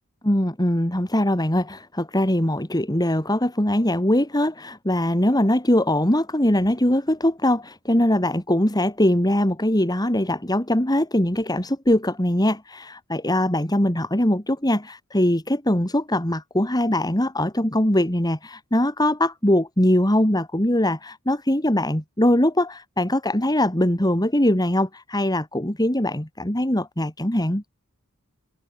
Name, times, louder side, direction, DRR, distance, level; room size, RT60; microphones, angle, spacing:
voice 1, 0.2-27.6, left 1 dB, 20° left, 3.4 m, -22 dB
head